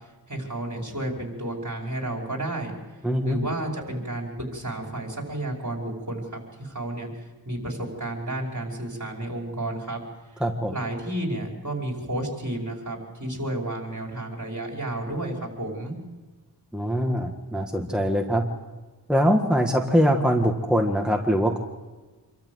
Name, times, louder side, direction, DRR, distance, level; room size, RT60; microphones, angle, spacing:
voice 1, 0.3-2.7 3.2-10.0 10.7-15.9, right 1 dB, 45° right, 0 dB, 5.4 m, -31 dB
voice 2, 3.0-3.4 10.4-10.7 16.7-18.4 19.1-21.6, equal, ahead, 2 dB, 1.7 m, -22 dB
27.0 x 13.5 x 8.0 m, 1.3 s
wide cardioid pair, 45°, 41 cm